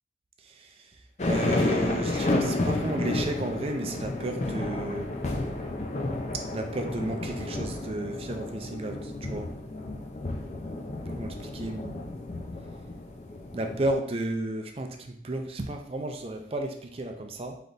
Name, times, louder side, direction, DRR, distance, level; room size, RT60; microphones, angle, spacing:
voice 1, 0.4-1.0 1.3-5.1 6.5-9.5 11.1-11.9 13.5-17.6, right 1 dB, 35° right, 4 dB, 0.5 m, -33 dB
sound 1, 1.2-13.9, left 2 dB, 40° left, 0.5 m, -31 dB
3.9 x 3.4 x 4.0 m, 0.66 s
head